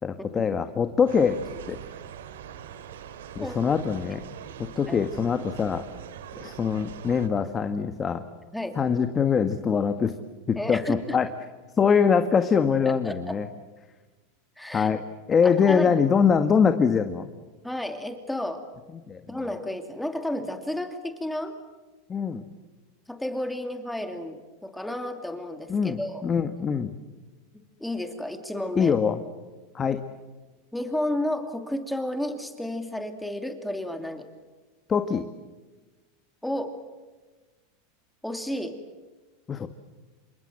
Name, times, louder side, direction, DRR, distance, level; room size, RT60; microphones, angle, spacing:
voice 1, 0.0-1.4 1.7-1.8 3.3-4.2 4.7-5.8 6.4-8.2 8.7-10.1 10.5-11.3 11.8-13.5 14.7-15.0 15.3-17.3 19.1-19.4 22.1-22.4 25.7-26.9 28.7-29.2 29.7-30.0 34.9-35.3 39.5-39.7, left 6 dB, 20° left, 8 dB, 1.6 m, -23 dB
sound 1, 1.1-7.3, right 9 dB, 85° right, 2.4 m, -42 dB
voice 2, 10.6-11.2 12.9-13.4 14.6-14.9 15.4-15.9 17.6-18.6 19.3-21.6 23.1-26.2 27.8-28.9 30.7-34.3 36.4-36.8 38.2-38.8, left 1 dB, 5° left, 6 dB, 2.6 m, -32 dB
28.5 x 26.0 x 7.8 m, 1.2 s
supercardioid pair, 135°, 0 cm